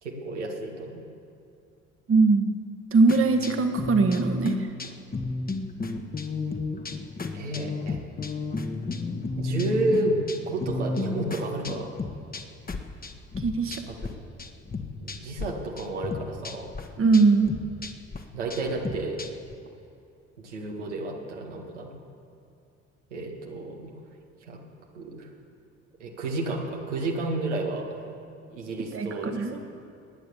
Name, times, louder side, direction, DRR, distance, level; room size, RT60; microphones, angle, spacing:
voice 1, 0.0-1.0 7.3-8.0 9.4-11.9 13.9-14.0 15.0-16.7 18.3-19.2 20.4-21.9 23.1-23.9 24.4-24.6 24.9-25.3 26.0-27.9 28.5-29.6, right 2 dB, 90° right, 0 dB, 1.8 m, -31 dB
voice 2, 2.1-2.5 2.9-4.5 13.4-13.8 17.0-17.5 28.9-29.6, right 4 dB, 40° right, 6 dB, 1.5 m, -21 dB
sound 1, 3.1-14.1 14.4-15.5 15.8-19.5, left 3 dB, 25° left, 1.4 m, -33 dB
19.0 x 9.4 x 7.1 m, 2.5 s
hypercardioid pair, 55°, 35 cm